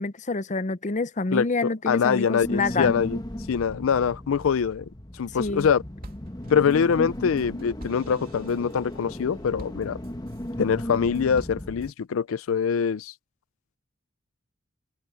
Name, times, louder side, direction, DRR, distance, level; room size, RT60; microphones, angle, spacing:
voice 1, 0.0-2.9 5.4-5.7, left 3 dB, 35° left, 0.7 m, -27 dB
voice 2, 1.3-3.2 3.5-4.9 5.1-5.8 6.5-10.0 10.6-13.1, left 6 dB, 90° left, 0.4 m, -24 dB
sound 1, 2.4-11.9, left 1 dB, 20° left, 1.3 m, -36 dB
sound 2, 5.2-5.7 6.0-10.5 10.9-11.9, right 1 dB, 45° right, 3.0 m, -48 dB
open air
head